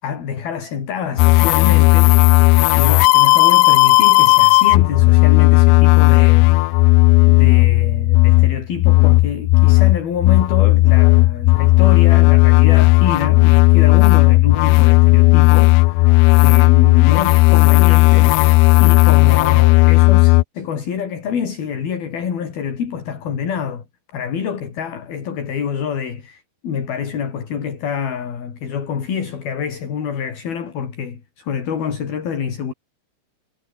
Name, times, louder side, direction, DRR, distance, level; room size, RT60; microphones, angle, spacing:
voice 1, 0.0-6.8 7.3-18.5 18.8-23.9 24.1-32.7, left 7 dB, 50° left, 5.3 m, -26 dB
sound 1, 1.2-20.4, left 20 dB, 85° left, 2.4 m, -12 dB
omnidirectional pair, 5.7 m